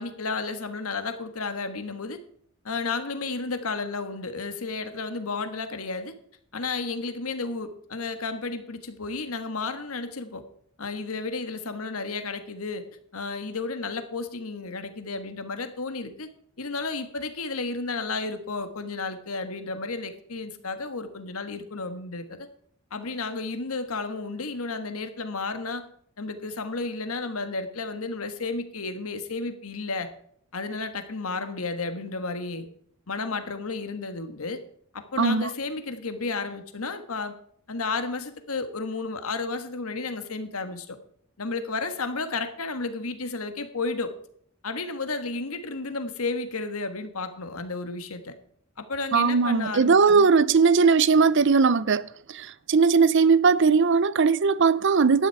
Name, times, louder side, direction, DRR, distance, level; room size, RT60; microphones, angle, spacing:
voice 1, 0.0-2.2 2.6-6.1 6.5-10.4 10.8-12.8 13.1-16.3 16.6-22.5 22.9-25.8 26.2-30.1 30.5-32.7 33.1-34.6 34.9-37.3 37.7-41.0 41.4-44.1 44.6-48.3 48.8-50.3, left 3 dB, 80° left, 1.4 m, -32 dB
voice 2, 35.2-35.5 49.1-55.3, right 5 dB, 55° right, 0.5 m, -19 dB
11.5 x 9.9 x 4.7 m
head